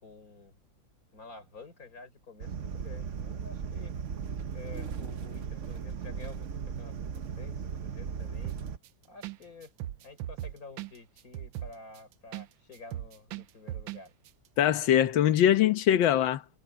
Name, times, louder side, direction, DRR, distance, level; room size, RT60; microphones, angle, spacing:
voice 1, 0.0-0.6 1.1-3.9 4.5-7.1 7.4-8.6 9.0-9.7 10.0-14.1, left 3 dB, 40° left, 4.8 m, -50 dB
sound 1, 2.4-8.8, right 6 dB, 50° right, 1.0 m, -37 dB
sound 2, 8.4-8.9 9.2-9.4 9.6-12.5 12.7-14.0 14.3-14.4, right 13 dB, 75° right, 1.4 m, -38 dB
voice 2, 14.6-16.6, left 11 dB, 70° left, 1.7 m, -23 dB
omnidirectional pair, 2.2 m